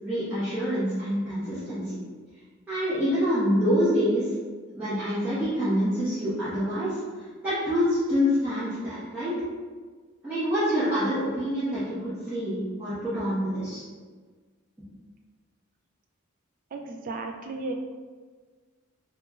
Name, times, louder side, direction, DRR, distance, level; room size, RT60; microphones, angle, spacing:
voice 1, 0.0-2.0 2.7-4.3 4.7-9.4 10.2-13.8, equal, 10° right, -16 dB, 1.1 m, -26 dB
voice 2, 16.7-17.7, right 3 dB, 40° right, 3 dB, 0.3 m, -34 dB
4.7 x 2.4 x 2.4 m, 1.5 s
head